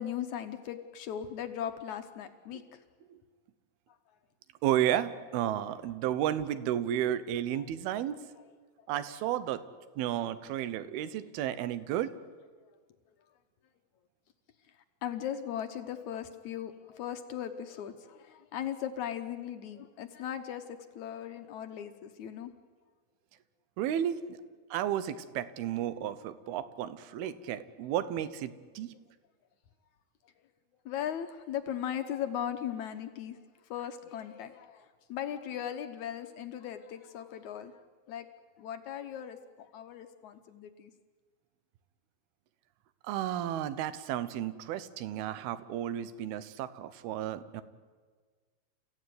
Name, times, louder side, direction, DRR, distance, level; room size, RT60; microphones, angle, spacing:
voice 1, 0.0-2.8 7.5-7.7 15.0-22.5 30.9-33.4 33.7-37.8 38.1-38.3 38.6-40.9, left 9 dB, 70° left, 7 dB, 1.9 m, -38 dB
voice 2, 4.6-8.2 8.9-9.6 10.0-12.1 23.8-24.4 24.7-28.9 43.0-47.6, right 11 dB, 80° right, 14 dB, 2.8 m, -32 dB
30.0 x 15.5 x 9.5 m, 1.6 s
omnidirectional pair, 4.5 m